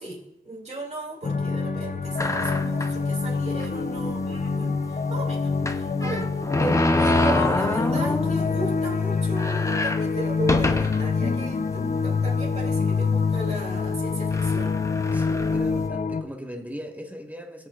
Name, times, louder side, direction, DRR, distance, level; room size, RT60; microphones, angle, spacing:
voice 1, 0.0-6.3 6.6-14.8, right 1 dB, 45° right, -3 dB, 2.8 m, -35 dB
sound 1, 1.2-16.2, left 4 dB, 55° left, 0.6 m, -26 dB
sound 2, 2.2-3.0 3.6-3.7 4.0-4.1 5.6-8.5 8.9-9.0 9.3-11.1 11.8-11.9 12.8-13.0 13.8-13.9 14.3-15.9, left 2 dB, 20° left, 0.7 m, -26 dB
voice 2, 15.1-17.7, equal, 10° right, 3 dB, 1.2 m, -38 dB
19.0 x 7.7 x 2.5 m, 0.84 s
wide cardioid pair, 65°, 16 cm